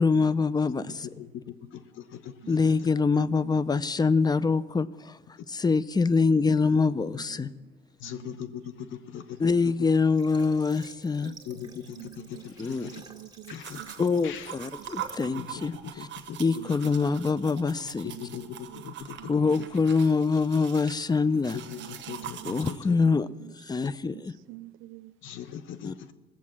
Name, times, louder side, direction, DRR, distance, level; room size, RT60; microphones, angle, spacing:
voice 1, 0.0-1.1 2.5-5.2 5.5-7.5 9.4-11.3 12.6-12.9 14.0-16.1 16.4-18.1 19.3-21.6 22.4-23.3 23.5-24.3 25.8-25.9, left 4 dB, 20° left, 0.6 m, -25 dB
voice 2, 1.2-2.9 6.5-6.8 8.0-9.5 11.5-13.0 13.5-13.8 14.2-14.5 15.3-16.4 16.7-16.8 18.0-19.3 19.6-19.7 21.5-23.0 25.2-26.1, left 9 dB, 85° left, 0.9 m, -40 dB
voice 3, 3.2-3.7 4.0-4.1 6.3-6.6 6.9-7.7 8.0-8.9 9.6-9.7 11.2-11.4 11.6-12.4 12.8-13.9 14.8-14.9 16.6-16.7 18.1-18.9 19.2-19.7 21.8-22.8 23.0-23.5 24.0-24.2 24.5-25.1, right 17 dB, 85° right, 0.5 m, -47 dB
Water / Water tap faucet, 10.2-15.3, right 3 dB, 20° right, 1.9 m, -51 dB
sound 1, 13.6-22.8, right 11 dB, 70° right, 1.0 m, -43 dB
18.5 x 7.5 x 7.3 m
cardioid pair, 90°, 20 cm